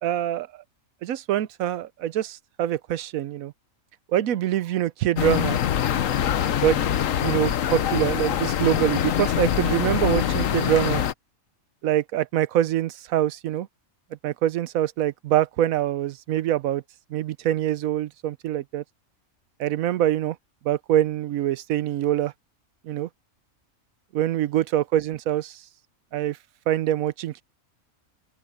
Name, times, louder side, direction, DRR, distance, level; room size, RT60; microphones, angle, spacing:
voice 1, 0.0-0.6 1.0-3.5 4.1-5.6 6.6-6.8 7.2-11.0 11.8-13.7 14.2-16.8 17.1-18.8 19.6-20.4 20.6-22.3 22.8-23.1 24.1-25.6 26.1-26.4 26.7-27.4, right 12 dB, 85° right, 1.1 m, -24 dB
sound 1, 5.2-11.1, left 10 dB, 75° left, 1.2 m, -24 dB
open air
omnidirectional pair, 1.4 m